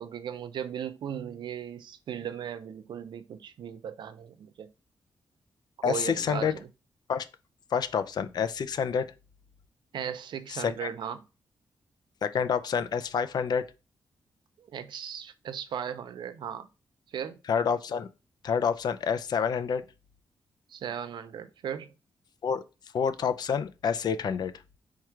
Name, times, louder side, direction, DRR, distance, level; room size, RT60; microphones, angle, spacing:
voice 1, 0.0-4.7 5.8-6.7 9.9-11.2 14.6-16.7 17.1-17.4 20.7-21.9, right 8 dB, 80° right, 0.5 m, -37 dB
voice 2, 5.8-6.5 7.1-7.2 7.7-9.1 10.5-10.9 12.2-13.6 17.5-18.1 18.4-19.8 22.4-22.6 22.9-24.5, left 7 dB, 60° left, 0.4 m, -28 dB
4.6 x 2.4 x 4.4 m
wide cardioid pair, 115°, 8 cm